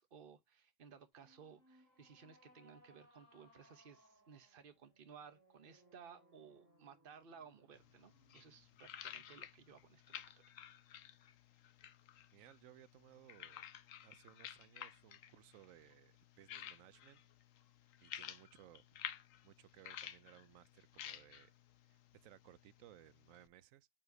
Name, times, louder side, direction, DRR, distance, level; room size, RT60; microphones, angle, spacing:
voice 1, 0.0-10.4, right 6 dB, 45° right, 1.1 m, -59 dB
sound 1, 1.1-10.5, equal, 15° right, 2.6 m, -70 dB
sound 2, 7.7-23.5, left 10 dB, 80° left, 1.1 m, -53 dB
voice 2, 12.3-13.7 14.0-17.2 18.0-18.9 19.4-21.5 21.9-23.9, right 13 dB, 85° right, 1.0 m, -62 dB
8.6 x 5.0 x 2.7 m
omnidirectional pair, 1.4 m